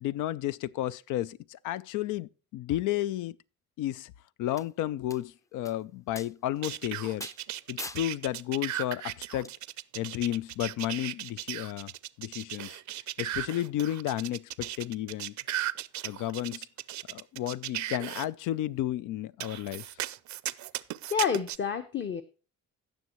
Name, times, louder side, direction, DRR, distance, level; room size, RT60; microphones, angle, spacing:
voice 1, 0.0-3.4 3.8-4.1 4.4-7.3 7.7-9.5 9.9-11.9 12.2-12.8 13.2-15.3 16.0-16.7 17.1-19.8, left 13 dB, 85° left, 0.5 m, -32 dB
sound 1, 4.6-4.7 5.1-5.2 5.7-5.8 6.2-6.3 6.7-6.8 7.2-7.4 7.8-8.0 9.4-9.5, left 2 dB, 10° left, 0.4 m, -40 dB
sound 2, 6.6-18.3 19.4-21.6, right 14 dB, 70° right, 0.5 m, -36 dB
voice 2, 21.1-22.2, left 7 dB, 40° left, 0.8 m, -29 dB
16.0 x 6.4 x 3.0 m
cardioid pair, 90°, 30 cm